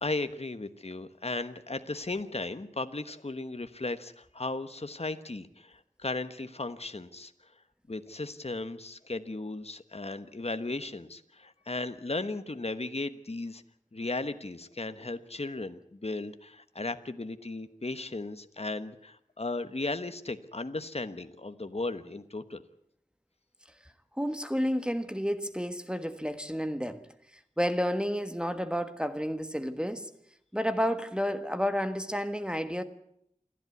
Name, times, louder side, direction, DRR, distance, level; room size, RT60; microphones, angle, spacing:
voice 1, 0.0-7.3 7.9-13.6 13.9-22.6, left 2 dB, 50° left, 1.2 m, -36 dB
voice 2, 24.2-27.0 27.6-30.1 30.5-32.8, equal, 5° right, 1.5 m, -30 dB
28.0 x 11.0 x 9.4 m
wide cardioid pair, 45°, 14 cm